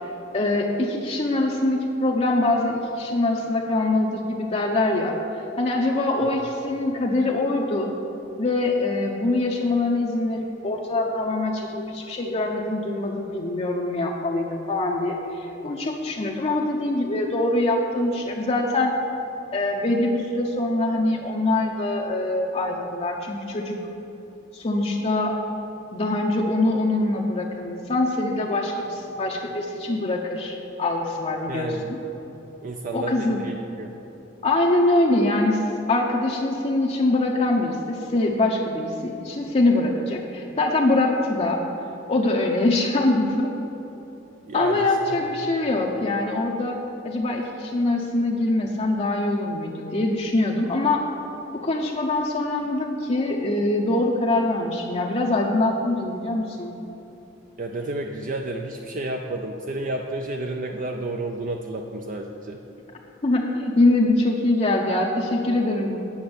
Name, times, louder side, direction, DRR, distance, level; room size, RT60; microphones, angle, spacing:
voice 1, 0.3-5.2 5.6-7.9 8.4-18.9 19.5-23.8 24.5-25.4 25.9-32.0 32.9-33.4 34.4-35.6 35.9-41.6 42.1-43.5 44.5-46.8 47.0-51.0 51.5-56.7 63.2-66.0, left 2 dB, 35° left, -1 dB, 0.7 m, -23 dB
voice 2, 31.5-31.9 32.6-33.9 44.5-45.2 57.6-62.6, right 2 dB, 45° right, 3 dB, 0.5 m, -31 dB
9.5 x 6.4 x 6.9 m, 3.0 s
head